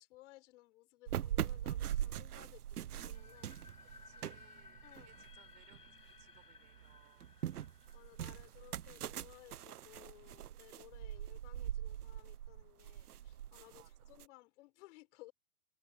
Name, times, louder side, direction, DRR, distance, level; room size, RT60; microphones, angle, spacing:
voice 1, 0.0-3.6 4.8-5.2 7.9-15.3, left 19 dB, 50° left, 4.9 m, -60 dB
sound 1, 1.1-6.2 6.6-14.2, right 11 dB, 80° right, 1.0 m, -42 dB
sound 2, 2.9-9.8, left 4 dB, 90° left, 4.5 m, -60 dB
voice 2, 3.8-7.3 8.4-8.6 11.1-11.3 13.7-14.1, right 24 dB, 45° right, 7.0 m, -68 dB
hypercardioid pair, 125°, 45 cm